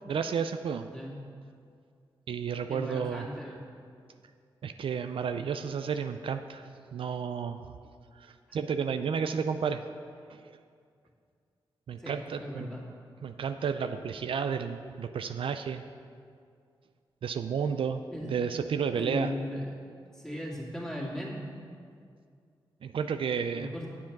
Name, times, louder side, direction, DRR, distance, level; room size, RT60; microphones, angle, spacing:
voice 1, 0.1-0.9 2.3-3.3 4.6-6.6 6.9-7.6 8.2-9.8 10.3-10.5 11.9-12.7 13.2-15.9 17.2-19.3 22.8-23.7, right 6 dB, 70° right, 8 dB, 0.4 m, -32 dB
voice 2, 2.7-3.7 8.5-8.6 12.0-12.8 18.1-18.3 19.0-19.7 20.1-21.5 23.5-23.9, left 1 dB, 5° left, -3 dB, 2.4 m, -37 dB
7.5 x 7.0 x 5.9 m, 2.2 s
cardioid pair, 50°, 9 cm